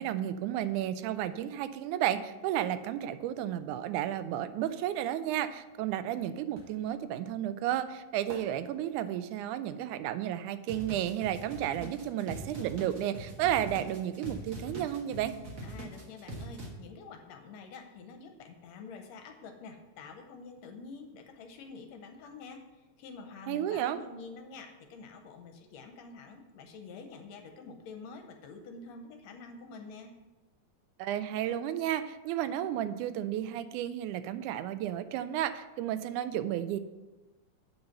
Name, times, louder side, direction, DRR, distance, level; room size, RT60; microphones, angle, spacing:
voice 1, 0.0-15.3 23.5-24.0 31.0-36.8, right 11 dB, 90° right, 12 dB, 2.0 m, -32 dB
sound 1, 6.5-11.5 11.8-13.4 13.7-13.8, right 2 dB, 70° right, 2.2 m, -54 dB
sound 2, 10.7-16.7, right 1 dB, 55° right, 0.9 m, -42 dB
voice 2, 15.6-22.6 23.0-30.1, left 4 dB, 75° left, 5 dB, 1.8 m, -47 dB
7.6 x 5.4 x 5.8 m, 1.1 s
omnidirectional pair, 3.4 m